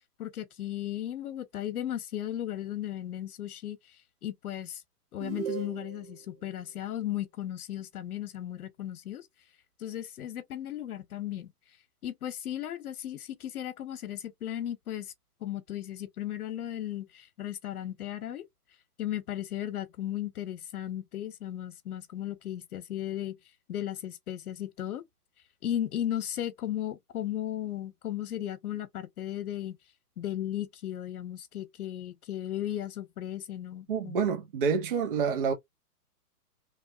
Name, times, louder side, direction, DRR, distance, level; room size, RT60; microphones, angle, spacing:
voice 1, 0.2-3.8 4.2-4.8 5.1-9.2 9.8-11.5 12.0-15.1 15.4-18.4 19.0-23.4 23.7-25.0 25.6-29.8 30.2-34.2, left 12 dB, 70° left, 0.9 m, -35 dB
sound 1, 5.2-6.2, right 7 dB, 55° right, 1.8 m, -37 dB
voice 2, 33.9-35.5, right 6 dB, 35° right, 0.5 m, -28 dB
3.0 x 2.0 x 2.6 m
hypercardioid pair, 155°, 46 cm